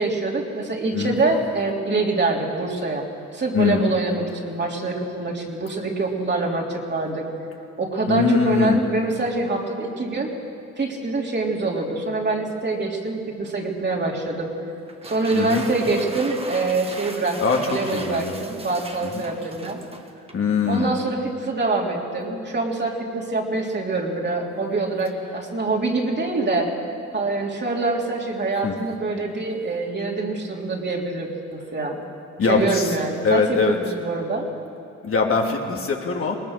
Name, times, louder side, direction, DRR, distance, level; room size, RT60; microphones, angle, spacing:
voice 1, 0.0-3.1 3.3-7.3 7.8-10.3 10.8-14.5 15.0-19.8 20.7-26.7 27.1-32.0 32.5-34.5, right 3 dB, 35° right, -1 dB, 3.5 m, -25 dB
voice 2, 8.1-8.8 15.3-15.6 17.4-17.6 17.9-18.5 19.0-19.2 20.3-20.9 28.6-28.7 32.4-32.9 33.2-33.7 35.0-36.4, left 5 dB, 45° left, 0 dB, 2.7 m, -21 dB
sound 1, 14.9-20.5, right 2 dB, 20° right, 1.8 m, -38 dB
21.5 x 19.5 x 6.7 m, 2.6 s
cardioid pair, 90°, 30 cm